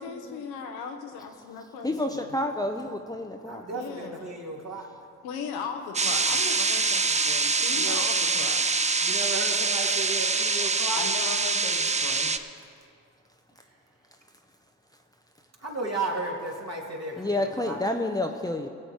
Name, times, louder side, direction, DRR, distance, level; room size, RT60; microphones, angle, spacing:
voice 1, 0.0-2.3 3.7-4.4 5.2-9.0 10.9-12.3, left 5 dB, 80° left, 4 dB, 1.2 m, -38 dB
voice 2, 1.8-3.6 17.2-18.7, left 1 dB, 10° left, 3 dB, 0.9 m, -29 dB
voice 3, 3.5-4.9 7.7-8.0 9.0-11.0 15.6-17.8, right 2 dB, 40° right, -1 dB, 2.7 m, -34 dB
sound 1, 5.9-12.4, right 4 dB, 20° right, 0.6 m, -25 dB
18.0 x 7.8 x 4.8 m, 2.3 s
hypercardioid pair, 45°, 38 cm